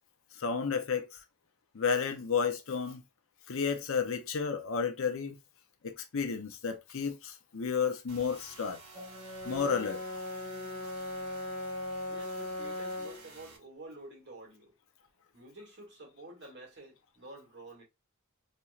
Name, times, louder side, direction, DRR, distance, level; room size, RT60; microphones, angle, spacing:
voice 1, 0.4-1.1 1.7-3.0 3.5-5.4 5.8-8.8 9.4-10.0, left 6 dB, 65° left, 0.6 m, -32 dB
sound 1, 8.1-13.6, right 3 dB, 70° right, 1.2 m, -52 dB
Brass instrument, 8.9-13.2, left 2 dB, 20° right, 1.8 m, -39 dB
voice 2, 12.1-14.7 15.3-17.8, right 1 dB, 50° right, 1.8 m, -50 dB
4.3 x 2.7 x 2.3 m
head